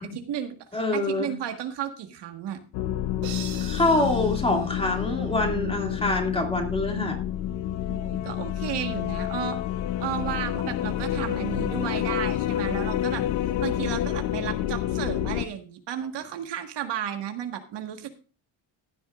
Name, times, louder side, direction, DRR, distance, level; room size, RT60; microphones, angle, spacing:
voice 1, 0.0-0.5 0.9-2.6 7.9-9.6 10.0-13.2 13.6-18.1, right 9 dB, 60° right, 5 dB, 1.7 m, -33 dB
voice 2, 0.7-1.3 3.6-7.2, left 2 dB, 10° left, 2 dB, 2.3 m, -25 dB
sound 1, 2.7-15.5, left 11 dB, 75° left, 0.9 m, -29 dB
sound 2, 3.2-5.6, right 9 dB, 85° right, 5.3 m, -43 dB
15.5 x 10.0 x 2.5 m, 0.35 s
cardioid pair, 145°, 47 cm